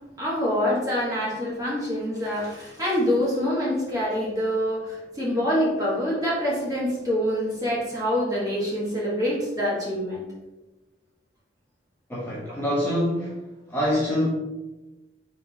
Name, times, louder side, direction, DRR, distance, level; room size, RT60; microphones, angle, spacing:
voice 1, 0.2-10.2, equal, 20° right, -6 dB, 1.4 m, -25 dB
voice 2, 12.1-13.4 13.7-14.3, equal, 10° left, -7 dB, 0.7 m, -25 dB
4.0 x 3.6 x 2.8 m, 1.1 s
head